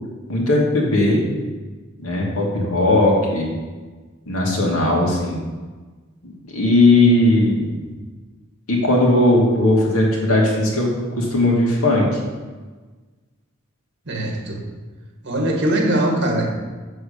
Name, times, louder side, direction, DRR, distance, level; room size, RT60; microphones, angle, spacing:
voice 1, 0.3-1.2 2.0-3.5 4.3-5.4 6.2-7.7 8.7-12.1, left 1 dB, 85° left, -2 dB, 2.5 m, -18 dB
voice 2, 14.1-14.6 15.2-16.5, right 1 dB, 55° right, 1 dB, 2.0 m, -21 dB
7.8 x 7.4 x 7.0 m, 1.3 s
head